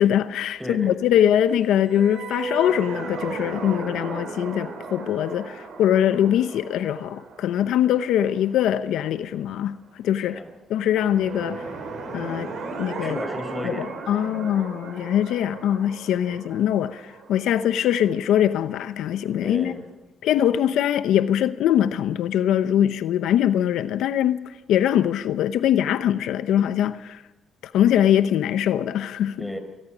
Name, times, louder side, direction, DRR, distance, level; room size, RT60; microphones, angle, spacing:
voice 1, 0.0-10.4 10.7-11.6 12.1-12.5 12.8-13.2 13.6-19.7 20.2-27.2 27.6-29.5, left 10 dB, 85° left, 0.7 m, -22 dB
voice 2, 0.6-1.2 10.3-10.5 13.0-14.4 16.2-16.4 19.4-19.8 29.4-29.6, left 1 dB, ahead, 4.6 m, -34 dB
sound 1, 1.8-9.0 10.9-18.7, right 4 dB, 65° right, 6.1 m, -36 dB
25.0 x 19.0 x 6.2 m
cardioid pair, 90°, 0 cm